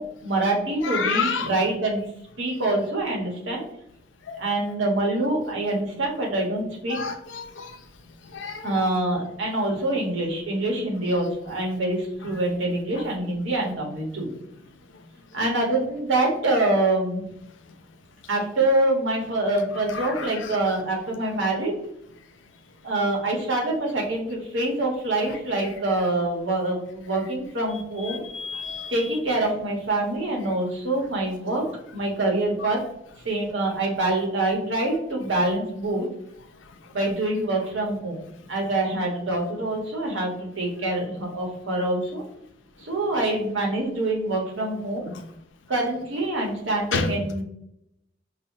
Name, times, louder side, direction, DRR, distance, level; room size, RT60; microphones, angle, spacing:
voice 1, 0.0-2.0 2.4-3.6 4.4-7.0 8.6-14.3 15.3-17.2 18.3-21.7 22.8-28.2 28.9-31.6 31.9-32.8 33.2-36.0 36.9-38.2 38.5-42.2 42.8-45.1 45.7-47.4, right 2 dB, 85° right, -1 dB, 1.1 m, -25 dB
voice 2, 0.9-1.4 4.3-4.4 6.9-7.4 8.3-8.5 28.3-28.9 46.9-47.1, left 5 dB, 80° left, 7 dB, 0.5 m, -27 dB
5.4 x 2.1 x 2.7 m, 0.77 s
head